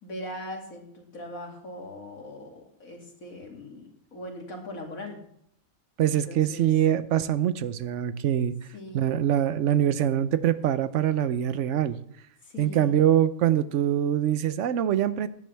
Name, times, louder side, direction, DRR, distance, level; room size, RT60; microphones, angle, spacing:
voice 1, 0.0-5.2 6.1-6.7 8.7-9.0 12.4-13.0, left 1 dB, 80° left, 1 dB, 2.9 m, -40 dB
voice 2, 6.0-8.5 8.9-12.0 12.6-15.3, right 10 dB, 65° right, 13 dB, 1.0 m, -24 dB
16.0 x 10.5 x 3.4 m, 0.69 s
omnidirectional pair, 1.4 m